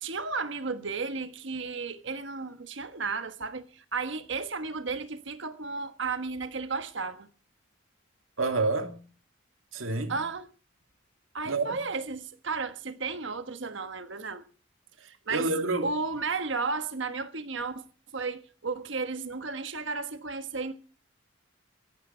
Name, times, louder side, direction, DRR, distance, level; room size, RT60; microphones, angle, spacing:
voice 1, 0.0-7.3 10.1-10.5 11.3-14.4 15.0-15.5 15.8-17.8 18.1-20.7, right 4 dB, 65° right, 1.4 m, -33 dB
voice 2, 8.4-9.0 9.7-10.2 11.4-11.8 15.3-15.9, right 3 dB, 85° right, 2.5 m, -28 dB
17.5 x 15.0 x 4.5 m
head